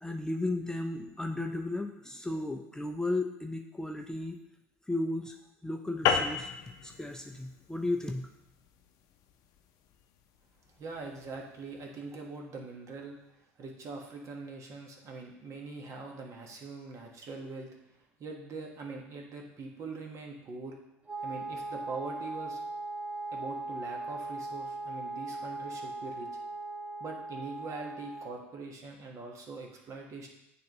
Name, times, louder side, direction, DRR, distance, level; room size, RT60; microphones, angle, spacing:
voice 1, 0.0-4.4 4.9-6.5 6.8-8.3, left 2 dB, 10° left, 3 dB, 0.5 m, -34 dB
sound 1, 6.1-10.8, left 7 dB, 60° left, 0.6 m, -33 dB
voice 2, 10.7-17.8 18.2-20.8 21.2-22.6 23.3-26.3 27.0-30.3, right 3 dB, 45° right, 1 dB, 1.4 m, -43 dB
Wind instrument woodwind instrument, 21.1-28.5, right 2 dB, 15° right, 1.9 m, -39 dB
9.2 x 3.5 x 3.1 m, 0.86 s
hypercardioid pair, 70°, 7 cm